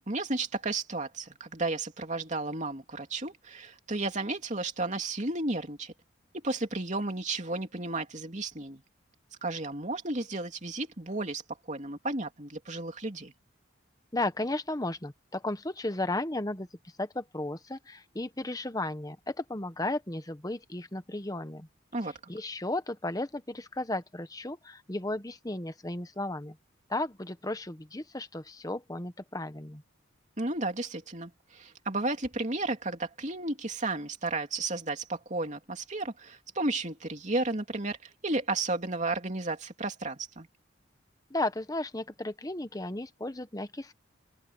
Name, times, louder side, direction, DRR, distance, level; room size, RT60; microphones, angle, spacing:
voice 1, 0.1-5.9 6.3-8.8 9.4-11.4 11.7-13.3 21.9-22.1 30.4-38.0 38.2-40.5, right 2 dB, 40° right, 3.1 m, -33 dB
voice 2, 14.1-16.7 17.0-21.7 22.3-26.6 26.9-29.8 41.3-43.9, left 2 dB, 20° left, 1.2 m, -34 dB
open air
head